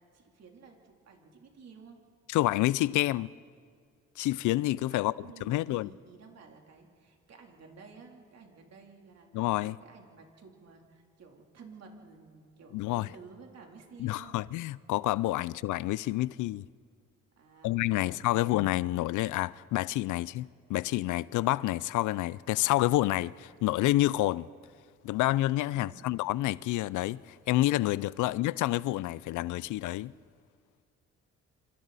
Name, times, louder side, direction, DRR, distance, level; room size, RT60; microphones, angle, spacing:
voice 1, 0.1-2.0 4.9-14.5 15.4-15.5 17.4-18.5 25.7-26.2 28.2-28.3, right 5 dB, 60° right, 3.2 m, -53 dB
voice 2, 2.3-3.3 4.2-5.1 5.4-5.9 9.3-9.7 12.7-13.1 14.0-16.7 17.6-24.5 25.0-30.1, left 16 dB, 80° left, 0.5 m, -28 dB
27.0 x 26.5 x 4.1 m
cardioid pair, 90°, 30 cm